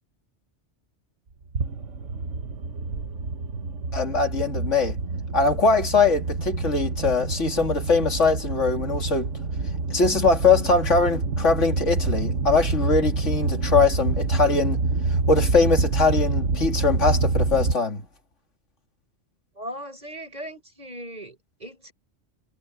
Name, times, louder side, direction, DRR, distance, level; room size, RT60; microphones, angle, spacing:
sound 1, 1.6-17.8, right 3 dB, 90° right, 1.8 m, -27 dB
voice 1, 3.9-5.0 5.3-9.3 9.9-14.8 15.1-18.0, left 4 dB, 80° left, 2.8 m, -22 dB
voice 2, 19.6-21.9, equal, 35° right, 6.9 m, -38 dB
omnidirectional pair, 1.2 m